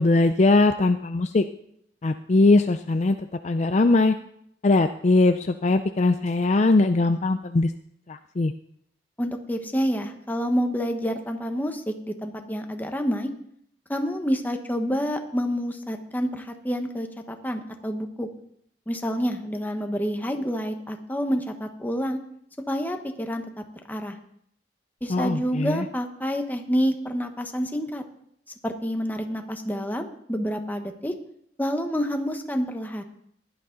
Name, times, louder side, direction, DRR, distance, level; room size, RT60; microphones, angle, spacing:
voice 1, 0.0-1.5 2.0-3.2 3.4-4.2 4.6-7.7 8.1-8.5 25.1-25.9, left 2 dB, 40° left, 9 dB, 0.5 m, -20 dB
voice 2, 9.2-13.3 13.9-18.3 18.9-22.2 22.7-24.2 25.0-28.0 28.6-31.1 31.6-33.0, equal, 10° left, 5 dB, 1.1 m, -28 dB
16.5 x 11.0 x 3.9 m, 0.71 s
head